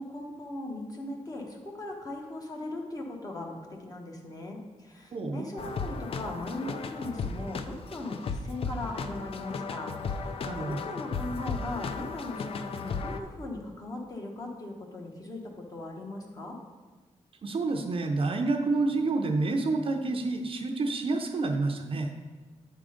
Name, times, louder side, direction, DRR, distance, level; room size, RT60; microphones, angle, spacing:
voice 1, 0.0-10.4 10.6-16.6, left 2 dB, 30° left, 0 dB, 1.1 m, -39 dB
voice 2, 5.1-5.5 10.5-10.9 17.4-22.1, right 3 dB, 50° right, 4 dB, 0.6 m, -28 dB
sound 1, 5.6-13.2, left 4 dB, 50° left, 0.4 m, -35 dB
8.7 x 3.7 x 5.0 m, 1.3 s
wide cardioid pair, 145°, 12 cm